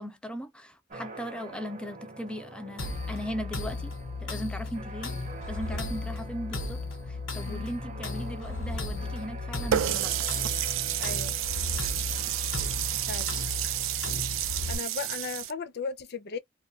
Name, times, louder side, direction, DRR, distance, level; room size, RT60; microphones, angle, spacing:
voice 1, 0.0-3.9 4.2-5.2 5.5-10.1, equal, 5° left, 0.5 m, -38 dB
sound 1, 0.9-14.8, right 3 dB, 40° right, 0.8 m, -46 dB
sound 2, 2.8-14.8, left 3 dB, 90° left, 1.1 m, -35 dB
Water tap faucet, 9.7-15.5, right 12 dB, 75° right, 0.4 m, -30 dB
voice 2, 11.0-11.4 13.1-13.4 14.7-16.4, left 5 dB, 55° left, 0.5 m, -36 dB
2.6 x 2.4 x 2.7 m
head